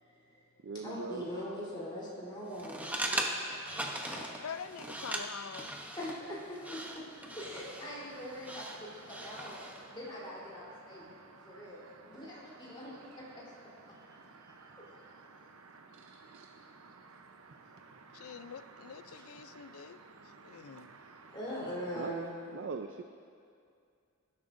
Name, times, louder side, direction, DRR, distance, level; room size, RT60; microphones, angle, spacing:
voice 1, 0.0-0.5 0.8-3.0 3.3-3.6 3.8-4.3 6.0-9.6 9.9-11.1 11.4-13.4 14.1-15.4 19.1-19.2 21.3-22.3, equal, 25° left, -7 dB, 3.6 m, -43 dB
voice 2, 0.6-1.3 15.9-16.5 22.0-22.2 22.5-23.0, right 5 dB, 60° right, 6 dB, 0.5 m, -41 dB
sound 1, 2.5-9.8, right 1 dB, 5° right, 0.8 m, -40 dB
voice 3, 4.4-5.8 18.1-21.0, left 6 dB, 75° left, 13 dB, 0.5 m, -45 dB
sound 2, 6.8-22.1, right 4 dB, 80° right, 0.8 m, -56 dB
22.0 x 11.5 x 2.6 m, 2.4 s
head